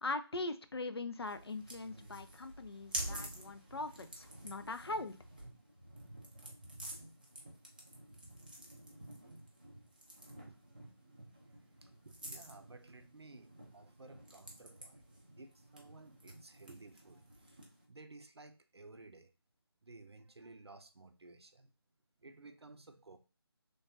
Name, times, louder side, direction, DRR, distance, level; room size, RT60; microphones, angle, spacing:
voice 1, 0.0-5.2, left 2 dB, 70° left, 0.4 m, -41 dB
sound 1, 1.2-17.8, right 1 dB, 20° right, 0.4 m, -49 dB
voice 2, 11.8-15.0 15.4-17.6 17.9-19.3 19.8-21.7 22.2-23.2, right 3 dB, 75° right, 0.5 m, -56 dB
3.2 x 2.2 x 2.7 m
figure-of-eight pair, 160°, 14 cm